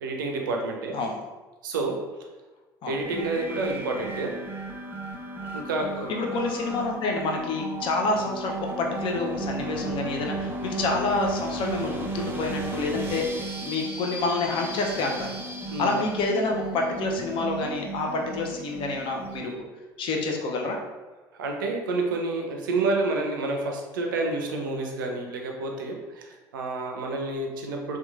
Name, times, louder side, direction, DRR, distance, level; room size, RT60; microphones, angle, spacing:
voice 1, 0.0-1.0 1.6-2.0 2.9-4.4 5.5-6.1 15.7-15.9 21.4-28.0, right 3 dB, 85° right, 2 dB, 0.4 m, -29 dB
sound 1, 3.0-19.5, right 2 dB, 20° right, 0.5 m, -35 dB
voice 2, 6.1-15.4 15.8-19.5 20.0-20.8, left 3 dB, 55° left, 1 dB, 0.5 m, -28 dB
2.9 x 2.2 x 2.3 m, 1.2 s
hypercardioid pair, 65°, 11 cm